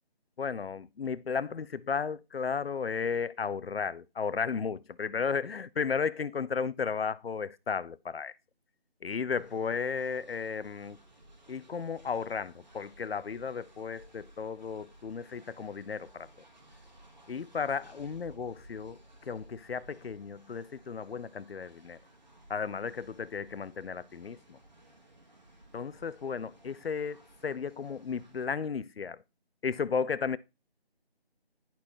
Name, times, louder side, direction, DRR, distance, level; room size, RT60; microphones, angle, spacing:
voice 1, 0.4-8.3 9.0-11.0 11.5-16.3 17.3-22.0 22.5-24.6 25.7-29.2 29.6-30.4, left 6 dB, 65° left, 0.5 m, -34 dB
Train, 9.4-28.4, right 1 dB, 45° right, 1.6 m, -57 dB
10.5 x 4.3 x 3.0 m
figure-of-eight pair, 175°, 32 cm